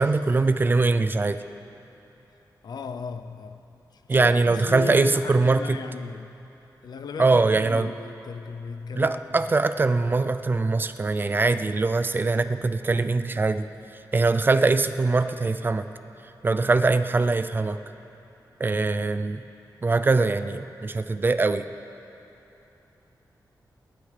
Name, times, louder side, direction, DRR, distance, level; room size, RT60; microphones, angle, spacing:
voice 1, 0.0-1.4 4.1-5.8 7.2-7.9 8.9-13.7 14.1-15.8 16.4-17.8 18.6-19.4 19.8-21.6, right 3 dB, 30° right, 0.4 m, -22 dB
voice 2, 2.6-3.6 3.9-6.5 6.8-9.5 14.5-14.6 15.2-15.6, left 6 dB, 65° left, 0.6 m, -37 dB
28.0 x 12.0 x 3.3 m
wide cardioid pair, 165°, 7 cm